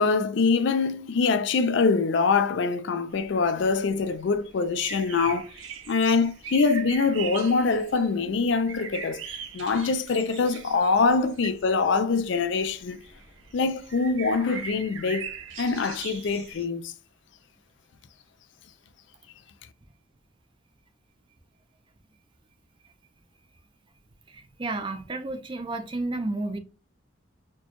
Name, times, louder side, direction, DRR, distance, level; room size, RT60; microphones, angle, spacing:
voice 1, 0.0-5.5 5.9-9.2 9.5-13.0 13.5-15.3 15.6-16.9, left 4 dB, 60° left, 0.4 m, -24 dB
sound 1, 3.1-16.6, right 7 dB, 75° right, 0.7 m, -41 dB
voice 2, 24.3-26.6, right 2 dB, 25° right, 0.4 m, -32 dB
4.3 x 2.2 x 2.9 m
head